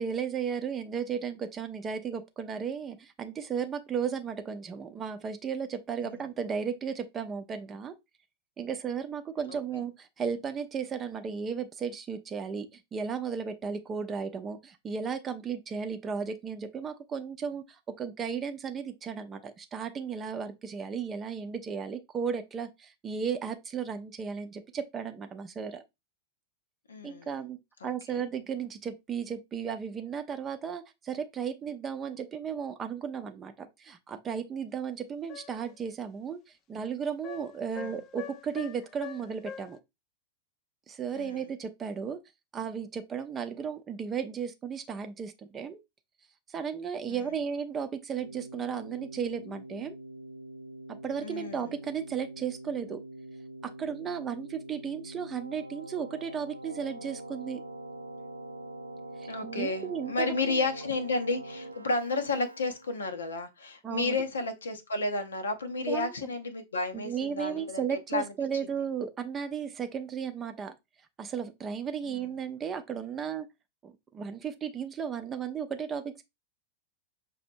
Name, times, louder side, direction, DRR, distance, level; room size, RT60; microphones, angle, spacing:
voice 1, 0.0-7.9 8.6-17.6 18.0-25.8 27.0-27.6 27.8-36.4 36.7-39.8 40.9-42.2 42.5-45.8 46.5-50.0 50.9-53.0 53.6-57.6 59.2-60.6 63.8-64.2 65.9-66.1 66.9-70.7 71.2-73.5 73.8-76.2, right 7 dB, 25° right, 0.6 m, -35 dB
voice 2, 9.5-9.8 26.9-27.3 27.8-28.2 37.7-38.0 41.1-41.4 47.1-47.3 51.2-51.7 59.3-68.3 72.0-72.4, left 3 dB, 70° left, 0.7 m, -32 dB
sound 1, 35.3-35.7 37.2-39.8, left 9 dB, 35° left, 0.4 m, -44 dB
Keyboard (musical), 48.2-63.2, right 1 dB, 85° right, 0.4 m, -44 dB
5.9 x 2.8 x 2.6 m
figure-of-eight pair, 90°, 0 cm